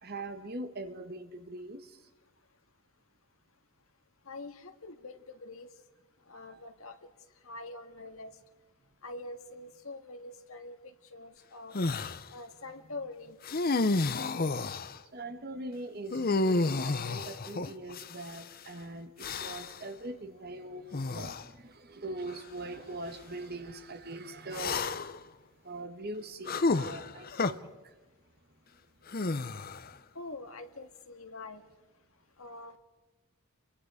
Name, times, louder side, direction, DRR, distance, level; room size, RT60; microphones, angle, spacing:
voice 1, 0.0-2.0 6.4-6.6 15.1-25.1 25.6-27.9 29.2-29.3, right 2 dB, 45° right, 8 dB, 1.6 m, -42 dB
voice 2, 4.3-5.7 6.3-7.0 7.4-8.3 9.0-11.8 12.3-13.4 30.2-31.6 32.4-32.8, left 2 dB, 70° left, 6 dB, 1.9 m, -44 dB
sound 1, 11.7-12.2 13.4-15.0 16.1-18.4 19.2-19.8 20.9-21.4 22.3-22.4 24.5-25.2 26.5-27.5 29.1-29.9, left 3 dB, 40° left, 0.7 m, -31 dB
29.5 x 23.5 x 4.9 m, 1.2 s
head